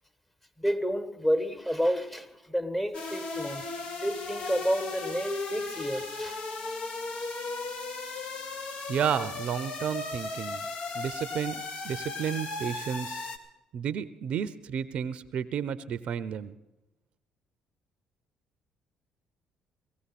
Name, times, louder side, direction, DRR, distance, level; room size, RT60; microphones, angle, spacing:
voice 1, 0.6-3.7 4.0-6.4, equal, 10° left, 1.4 m, -30 dB
sound 1, 2.9-13.4, left 3 dB, 60° left, 1.5 m, -36 dB
voice 2, 8.9-10.7 10.9-13.3 13.7-16.6, right 8 dB, 60° right, 0.6 m, -32 dB
18.0 x 15.5 x 4.2 m
hypercardioid pair, 60°, 2 cm